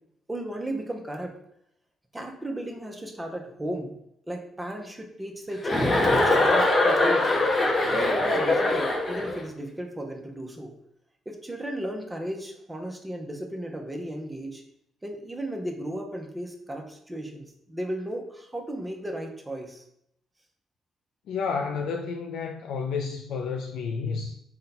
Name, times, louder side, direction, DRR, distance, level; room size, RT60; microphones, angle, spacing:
voice 1, 0.3-1.4 2.1-4.0 4.3-7.3 7.9-10.7 11.3-14.6 15.0-19.8, right 1 dB, 15° right, 0.6 m, -35 dB
Chuckle chortle, 5.6-9.4, left 2 dB, 30° left, 0.7 m, -22 dB
voice 2, 21.3-24.4, left 5 dB, 80° left, 0.3 m, -30 dB
3.9 x 2.2 x 4.0 m
cardioid pair, 90°, 0 cm